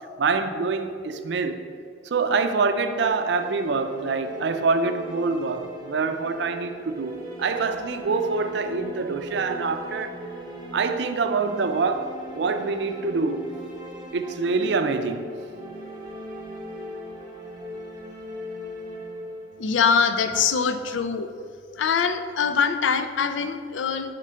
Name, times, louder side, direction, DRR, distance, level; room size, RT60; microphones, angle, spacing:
voice 1, 0.2-1.6 2.0-10.2 10.7-12.1 12.3-13.5 14.1-15.3, right 4 dB, 65° right, 9 dB, 0.4 m, -25 dB
sound 1, 2.8-20.8, equal, 20° right, 1.0 m, -40 dB
voice 2, 19.6-21.3 21.8-24.1, left 6 dB, 75° left, 9 dB, 0.4 m, -23 dB
6.2 x 3.7 x 5.5 m, 2.3 s
head